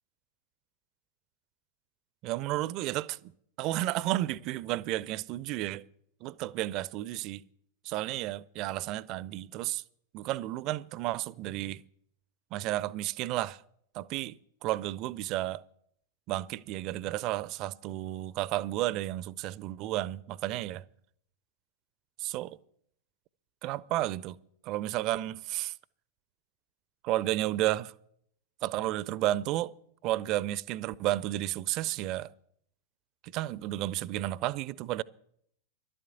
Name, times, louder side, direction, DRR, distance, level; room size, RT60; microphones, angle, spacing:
voice 1, 2.2-3.2 3.6-5.8 6.2-7.4 7.8-9.8 10.1-11.8 12.5-13.6 13.9-15.6 16.3-20.8 22.2-22.6 23.6-24.4 24.6-25.7 27.0-27.9 28.6-29.7 30.0-32.3 33.2-35.0, right 15 dB, 40° right, 0.4 m, -32 dB
11.5 x 7.8 x 9.1 m
figure-of-eight pair, 90°, 0 cm